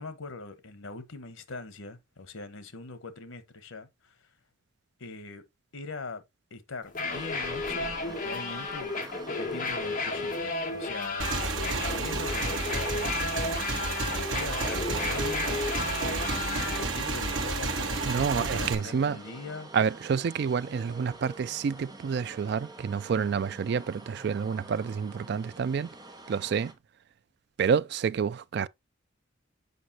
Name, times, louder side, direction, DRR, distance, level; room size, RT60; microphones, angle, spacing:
voice 1, 0.0-4.2 5.0-5.4 5.7-6.2 6.5-9.1 9.4-15.6 16.0-19.7 23.1-23.3, left 3 dB, 85° left, 1.1 m, -42 dB
sound 1, 6.9-16.8, left 3 dB, 40° left, 1.7 m, -33 dB
sound 2, 7.1-26.7, right 2 dB, 20° right, 1.0 m, -47 dB
Motorcycle / Engine, 11.2-18.7, right 3 dB, 75° right, 1.3 m, -31 dB
voice 2, 18.1-19.2 19.7-25.9 26.3-26.7 27.6-28.7, right 6 dB, 55° right, 0.3 m, -28 dB
8.1 x 5.2 x 2.8 m
head